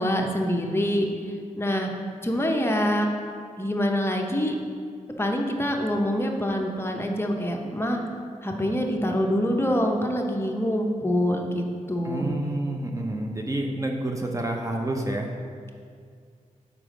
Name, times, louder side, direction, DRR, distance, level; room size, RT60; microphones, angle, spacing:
voice 1, 0.0-1.9 2.2-3.1 3.6-4.5 5.2-8.0 8.4-12.3, equal, 20° left, 1 dB, 0.8 m, -25 dB
voice 2, 12.0-15.3, right 1 dB, 25° right, 2 dB, 0.6 m, -29 dB
4.9 x 4.8 x 6.2 m, 2.2 s
cardioid pair, 60°, 13 cm